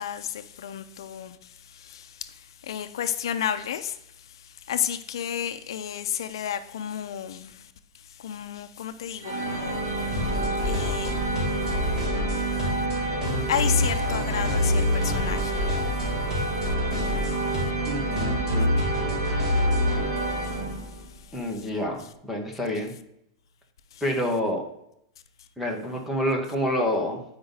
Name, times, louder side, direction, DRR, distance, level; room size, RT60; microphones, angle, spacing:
voice 1, 0.0-1.4 1.7-2.3 2.6-4.0 4.4-7.6 8.2-11.1 12.4-12.5 13.2-15.6 16.4-16.5 20.4-20.6 21.6-21.7, left 9 dB, 80° left, 0.6 m, -32 dB
sound 1, 9.2-21.2, right 2 dB, 70° right, 3.0 m, -29 dB
sound 2, 10.1-20.0, left 2 dB, 20° right, 2.4 m, -27 dB
voice 2, 17.9-18.7 21.3-22.9 24.0-24.6 25.6-27.2, equal, ahead, 0.9 m, -28 dB
8.6 x 5.1 x 3.9 m
supercardioid pair, 175°, 2 cm